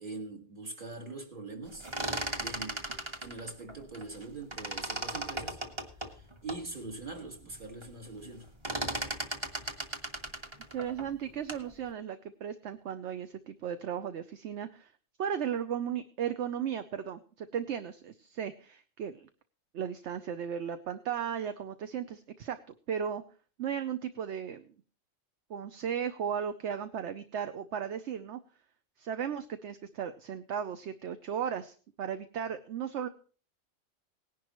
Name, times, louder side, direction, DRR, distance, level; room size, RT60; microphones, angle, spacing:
voice 1, 0.0-1.9 2.4-2.9 3.2-5.6 6.0-8.5, right 3 dB, 40° right, 2.2 m, -43 dB
sound 1, 1.7-4.2 4.5-6.6 7.2-7.3 7.5-7.9 8.2-11.7, right 1 dB, 25° right, 1.2 m, -37 dB
voice 2, 10.7-14.9 15.2-19.3 19.7-22.6 22.9-23.2 23.6-24.7 25.5-28.4 29.0-33.1, right 8 dB, 65° right, 1.0 m, -36 dB
18.5 x 11.0 x 3.1 m
omnidirectional pair, 1.4 m